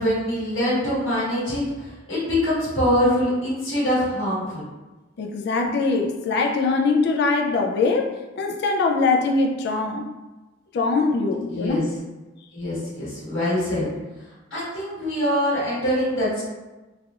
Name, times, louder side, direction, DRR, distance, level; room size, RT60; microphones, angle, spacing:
voice 1, 0.0-4.6 11.5-11.8 12.5-13.9 14.5-16.4, equal, 85° left, -9 dB, 1.4 m, -24 dB
voice 2, 5.2-10.1 10.7-11.9, left 3 dB, 55° left, 3 dB, 0.3 m, -22 dB
3.3 x 2.4 x 2.3 m, 1.1 s
head